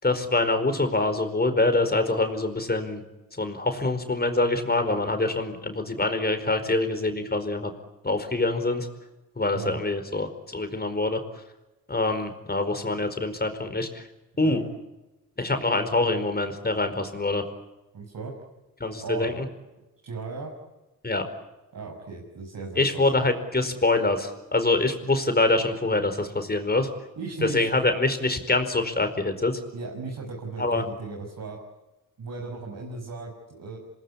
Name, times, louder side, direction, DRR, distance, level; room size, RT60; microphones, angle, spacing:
voice 1, 0.0-3.0 3.4-7.7 8.0-8.9 9.4-11.2 11.9-14.0 14.4-14.6 15.4-17.4 18.8-19.3 21.0-21.2 22.8-26.9 27.4-29.6 30.6-30.8, left 2 dB, 25° left, 8 dB, 4.8 m, -25 dB
voice 2, 17.9-18.3 19.0-19.3 20.0-20.5 21.7-23.3 27.2-27.7 29.7-31.6 32.2-33.8, right 4 dB, 70° right, -1 dB, 6.6 m, -36 dB
27.0 x 19.5 x 9.9 m, 1.0 s
cardioid pair, 80°, 34 cm